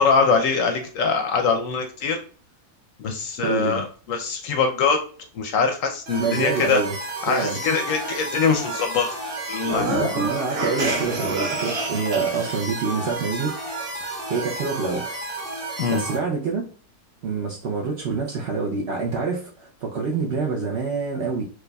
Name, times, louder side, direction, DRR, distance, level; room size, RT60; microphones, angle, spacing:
voice 1, 0.0-2.2 3.0-5.0 5.3-6.8 7.2-9.1 9.5-9.9 15.8-16.0, left 5 dB, 70° left, 4 dB, 0.9 m, -22 dB
voice 2, 3.4-3.8 6.2-6.9 7.3-7.6 10.1-13.5 14.3-15.1 15.9-16.6 17.2-21.4, right 4 dB, 60° right, -1 dB, 0.8 m, -26 dB
sound 1, 6.1-16.2, right 2 dB, 35° right, 1.4 m, -32 dB
sound 2, 9.6-12.6, right 2 dB, 85° right, 1.5 m, -27 dB
4.6 x 2.5 x 2.2 m, 0.40 s
omnidirectional pair, 1.6 m